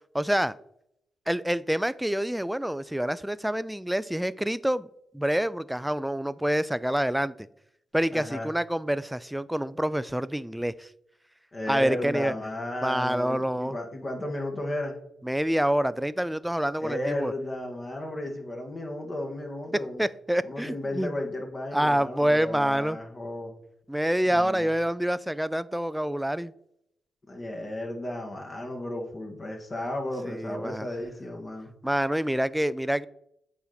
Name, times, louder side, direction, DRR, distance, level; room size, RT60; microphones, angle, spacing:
voice 1, 0.1-0.6 1.3-4.9 5.1-7.5 7.9-10.9 11.7-12.3 12.8-13.8 15.2-17.3 20.0-21.2 21.7-23.0 23.9-26.5 30.3-30.9 31.8-33.1, right 1 dB, 5° right, 17 dB, 0.4 m, -27 dB
voice 2, 8.1-8.5 11.5-15.0 16.8-20.0 20.4-23.5 24.2-24.7 27.3-31.7, left 1 dB, 40° left, 2 dB, 1.7 m, -34 dB
8.4 x 4.3 x 4.0 m, 0.76 s
hypercardioid pair, 45°, 0 cm